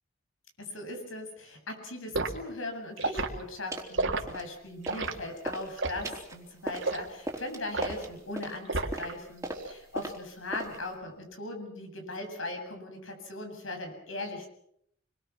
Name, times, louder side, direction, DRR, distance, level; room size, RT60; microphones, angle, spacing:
voice 1, 0.6-14.5, left 2 dB, 80° left, 4 dB, 7.8 m, -39 dB
Liquid, 2.1-2.4 3.0-3.3 3.9-4.2 4.8-5.1 5.8-6.1 6.8-7.1 7.7-8.0 8.7-9.1 9.4-9.7, right 3 dB, 65° right, 3.3 m, -30 dB
sound 1, 3.0-3.3 3.7-4.0 4.3-5.1 5.4-10.9, right 1 dB, 15° right, 3.9 m, -39 dB
29.0 x 23.0 x 6.0 m, 0.71 s
head